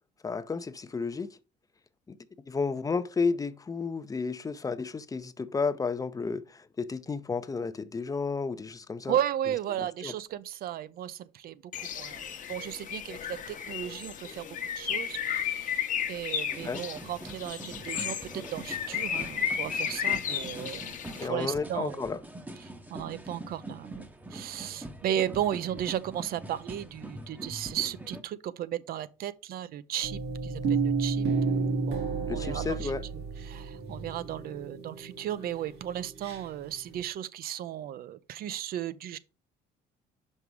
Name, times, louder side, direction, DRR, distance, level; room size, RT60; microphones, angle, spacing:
voice 1, 0.2-1.3 2.1-2.2 2.5-9.2 9.8-10.1 16.6-16.8 20.5-20.8 21.2-22.2 32.3-33.0, left 4 dB, 20° left, 0.6 m, -32 dB
voice 2, 9.1-15.8 16.1-22.0 22.6-24.0 24.3-32.9 33.4-39.2, right 11 dB, 60° right, 0.6 m, -35 dB
Bird, 11.7-21.3, left 9 dB, 50° left, 1.0 m, -34 dB
sound 1, 16.5-28.2, right 2 dB, 10° right, 0.8 m, -43 dB
sound 2, 30.0-36.5 36.9-37.0, right 4 dB, 80° right, 2.4 m, -31 dB
5.8 x 5.5 x 4.7 m
cardioid pair, 110°, 17 cm